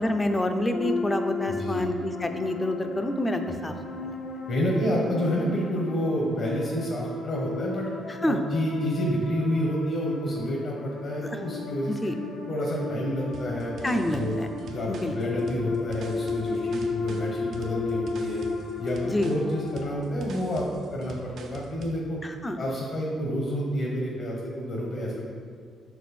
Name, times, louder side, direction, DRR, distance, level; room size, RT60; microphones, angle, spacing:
voice 1, 0.0-3.7 4.0-4.2 8.2-8.4 11.2-11.4 11.9-12.1 13.8-14.5 14.9-15.1 19.0-19.3 22.2-22.6, left 1 dB, 20° left, 6 dB, 0.5 m, -27 dB
sound 1, 0.7-20.0, left 4 dB, 75° left, 1.0 m, -34 dB
voice 2, 1.5-1.8 3.4-3.5 4.5-7.9 8.3-12.1 12.5-14.3 14.7-18.4 18.8-22.2 22.6-25.1, equal, 55° left, -2 dB, 1.1 m, -29 dB
sound 2, 13.3-22.0, right 3 dB, 70° right, 0.6 m, -45 dB
6.1 x 4.6 x 4.2 m, 2.1 s
cardioid pair, 90°, 0 cm